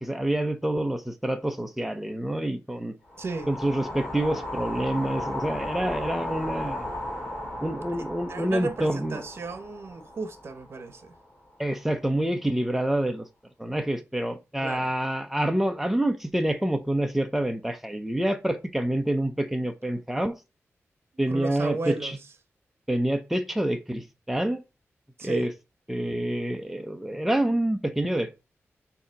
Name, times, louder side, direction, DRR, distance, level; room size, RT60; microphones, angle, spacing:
voice 1, 0.0-2.9 3.5-6.8 7.6-9.2 11.6-13.2 13.6-20.3 21.2-22.2 22.9-24.6 25.2-25.5 25.9-28.4, right 1 dB, 5° right, 0.7 m, -27 dB
sound 1, 3.1-11.3, left 1 dB, 15° left, 2.5 m, -35 dB
voice 2, 3.2-3.5 8.3-11.1 14.6-14.9 21.3-22.2 25.2-25.5, right 3 dB, 55° right, 0.9 m, -34 dB
6.9 x 2.9 x 5.1 m
wide cardioid pair, 145°, 5 cm